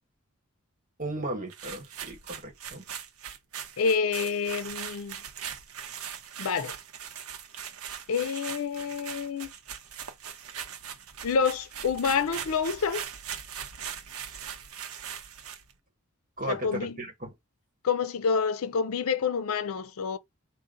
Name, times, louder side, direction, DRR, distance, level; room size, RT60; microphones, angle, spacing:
voice 1, 1.0-2.8 16.4-17.3, right 1 dB, 40° right, 1.2 m, -35 dB
sound 1, 1.5-15.7, right 8 dB, 85° right, 0.7 m, -40 dB
voice 2, 3.8-5.2 6.4-6.7 8.1-9.5 11.2-13.0 16.5-17.0 17.8-20.2, left 5 dB, 80° left, 0.5 m, -28 dB
3.9 x 2.1 x 3.8 m
head